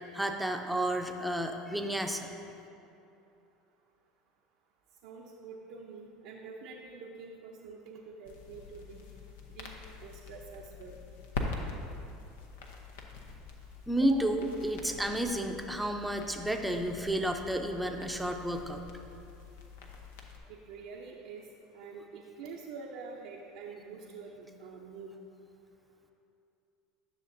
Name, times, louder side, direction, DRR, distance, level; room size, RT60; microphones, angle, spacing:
voice 1, 0.1-2.3 13.9-18.8, right 1 dB, 5° right, 4 dB, 0.6 m, -31 dB
voice 2, 5.0-9.1 9.5-9.7 10.0-10.9 14.0-14.2 20.5-21.4 21.7-25.1, right 4 dB, 70° right, -2 dB, 0.6 m, -46 dB
sound 1, 8.2-20.4, left 3 dB, 80° left, 0.7 m, -44 dB
10.0 x 6.5 x 2.6 m, 2.7 s
hypercardioid pair, 85°, 0 cm